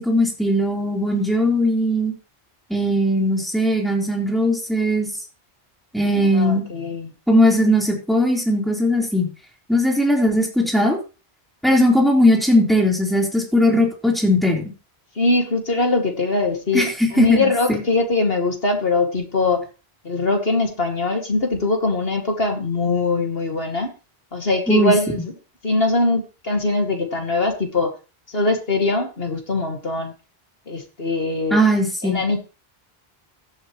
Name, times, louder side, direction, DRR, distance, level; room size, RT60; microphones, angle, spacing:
voice 1, 0.0-2.1 2.7-5.1 5.9-6.7 7.3-9.3 9.7-11.0 11.6-14.6 16.7-17.8 24.7-24.9 31.5-32.2, equal, ahead, -1 dB, 3.9 m, -18 dB
voice 2, 6.1-7.1 15.2-19.6 20.0-23.9 24.3-25.2 25.6-27.9 28.3-30.1 30.7-31.6 32.0-32.4, left 2 dB, 65° left, 3 dB, 2.6 m, -22 dB
16.0 x 11.0 x 3.2 m, 0.33 s
omnidirectional pair, 1.1 m